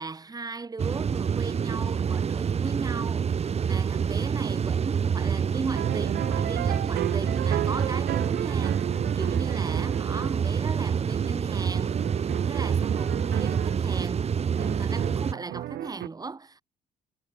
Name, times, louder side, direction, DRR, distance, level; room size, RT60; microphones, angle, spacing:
voice 1, 0.0-8.9 9.1-14.3 14.5-16.6, right 4 dB, 20° right, 3.9 m, -37 dB
sound 1, 0.8-15.3, right 7 dB, 40° right, 2.9 m, -27 dB
sound 2, 5.7-10.8 11.1-13.8 14.6-16.1, right 14 dB, 65° right, 0.9 m, -34 dB
cardioid pair, 110°, 17 cm